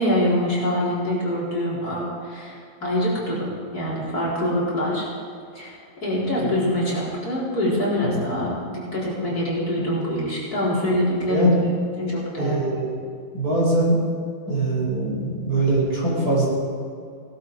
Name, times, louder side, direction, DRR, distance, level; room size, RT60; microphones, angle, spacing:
voice 1, 0.0-5.1 5.5-5.8 6.0-11.5 12.0-12.6, equal, 50° left, -7 dB, 4.7 m, -24 dB
voice 2, 12.4-12.9 13.3-14.0 14.5-16.5, right 2 dB, 50° right, -5 dB, 5.4 m, -22 dB
18.5 x 12.0 x 4.8 m, 2.3 s
omnidirectional pair, 2.1 m